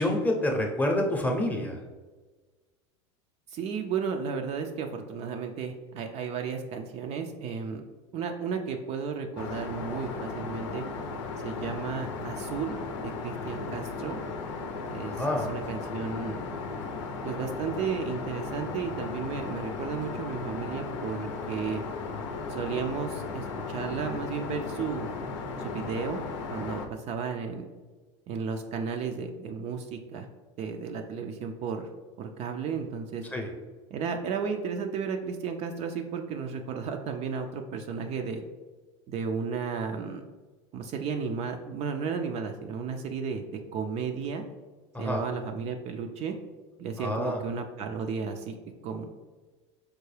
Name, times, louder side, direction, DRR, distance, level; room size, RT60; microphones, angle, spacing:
voice 1, 0.0-1.8 15.0-15.5 33.3-33.5 44.9-45.2 47.0-47.4, left 1 dB, 10° left, 1 dB, 0.7 m, -27 dB
voice 2, 3.5-7.8 8.1-10.9 11.4-12.8 13.0-14.2 14.9-16.5 17.2-21.8 22.5-25.1 25.6-26.2 26.5-27.6 28.3-30.3 30.6-31.9 32.2-33.2 33.9-38.4 39.1-40.2 40.7-44.4 45.0-46.4 46.8-48.5 48.8-49.1, right 6 dB, 45° right, 4 dB, 0.4 m, -33 dB
Aircraft, 9.4-26.9, left 4 dB, 80° left, 0.5 m, -36 dB
4.5 x 2.2 x 3.2 m, 1.3 s
supercardioid pair, 105°, 15 cm